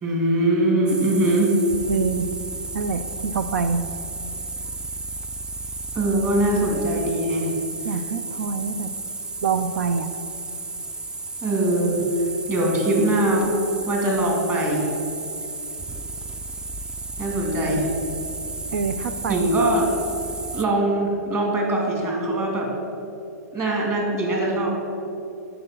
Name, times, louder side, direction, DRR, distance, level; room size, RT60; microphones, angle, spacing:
voice 1, 0.0-1.6 5.9-7.5 7.9-8.0 11.4-13.5 13.9-14.9 17.2-17.9 19.3-19.9 20.5-22.7 23.5-24.8, right 1 dB, 25° right, -1 dB, 2.7 m, -22 dB
sound 1, 0.9-20.7, right 3 dB, 10° right, 0.3 m, -33 dB
voice 2, 1.9-2.3 2.7-3.8 7.8-8.9 9.4-10.1 18.7-19.4, right 5 dB, 80° right, 9 dB, 0.5 m, -25 dB
7.8 x 6.9 x 7.6 m, 2.7 s
hypercardioid pair, 135°, 9 cm